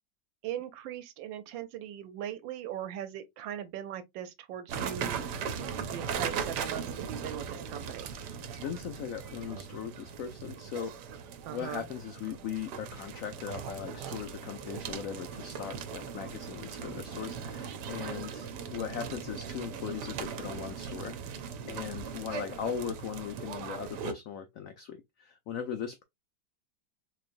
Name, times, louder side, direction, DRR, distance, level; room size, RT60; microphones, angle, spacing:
voice 1, 0.4-5.2 5.9-8.1 11.4-11.8, right 10 dB, 85° right, 1.4 m, -39 dB
sound 1, 4.7-24.1, right 7 dB, 70° right, 1.2 m, -39 dB
voice 2, 8.5-10.9 11.5-26.0, left 8 dB, 85° left, 0.7 m, -39 dB
4.1 x 3.1 x 2.5 m
omnidirectional pair, 2.0 m